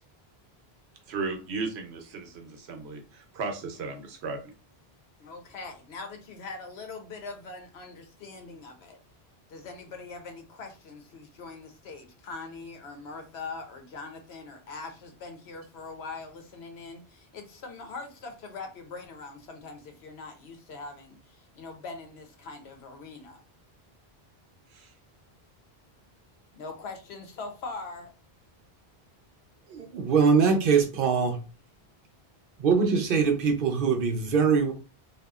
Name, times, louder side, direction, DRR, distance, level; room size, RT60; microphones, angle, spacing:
voice 1, 1.1-4.5 24.7-24.9, right 4 dB, 85° right, 0.9 m, -35 dB
voice 2, 5.2-9.0 9.5-23.4 26.5-28.1, left 3 dB, 85° left, 1.0 m, -42 dB
voice 3, 29.7-31.4 32.6-34.7, right 5 dB, 60° right, 0.8 m, -23 dB
2.8 x 2.3 x 2.3 m
omnidirectional pair, 1.1 m